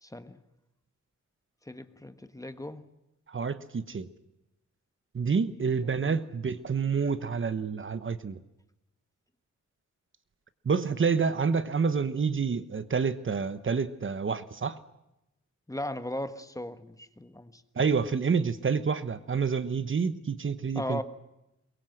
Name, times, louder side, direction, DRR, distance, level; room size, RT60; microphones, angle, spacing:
voice 1, 0.0-0.4 1.6-2.8 5.8-6.2 15.7-17.6 20.7-21.0, left 1 dB, 10° left, 10 dB, 1.3 m, -37 dB
voice 2, 3.3-4.1 5.1-8.4 10.6-14.8 17.7-21.0, right 5 dB, 45° right, 13 dB, 1.1 m, -28 dB
23.0 x 22.5 x 7.8 m, 0.89 s
wide cardioid pair, 140°, 29 cm